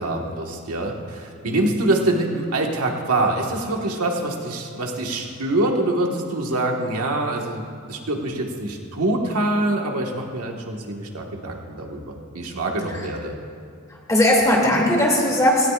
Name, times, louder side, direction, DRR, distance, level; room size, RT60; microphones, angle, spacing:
voice 1, 0.0-13.4, right 2 dB, 85° right, 1 dB, 1.6 m, -25 dB
voice 2, 13.9-15.7, left 1 dB, 15° left, -3 dB, 2.7 m, -18 dB
18.5 x 16.5 x 2.5 m, 2.2 s
head